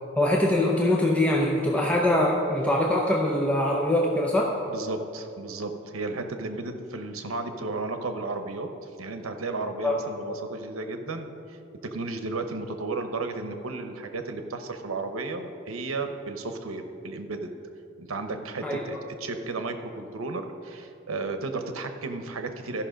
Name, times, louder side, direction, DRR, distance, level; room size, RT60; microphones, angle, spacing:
voice 1, 0.2-4.6 9.8-9.9 18.6-19.0, left 1 dB, 5° left, -2 dB, 0.6 m, -23 dB
voice 2, 4.7-11.6 11.9-17.5 18.0-22.8, right 3 dB, 80° right, 7 dB, 0.9 m, -33 dB
13.5 x 5.7 x 5.1 m, 2.6 s
head